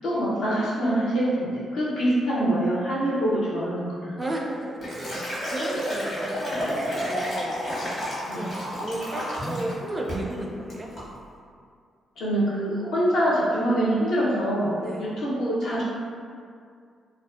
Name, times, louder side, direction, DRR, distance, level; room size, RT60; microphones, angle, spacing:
voice 1, 0.0-4.2 8.3-8.4 12.2-15.8, right 1 dB, 75° left, -8 dB, 0.7 m, -25 dB
Liquid, 4.2-9.8 10.1-10.3 10.7-11.1, equal, 50° left, 1.1 m, -31 dB
voice 2, 4.9-7.6 8.3-10.9 14.7-15.1, right 1 dB, 30° right, 0 dB, 0.4 m, -34 dB
2.5 x 2.3 x 2.4 m, 2.2 s
supercardioid pair, 55°, 0 cm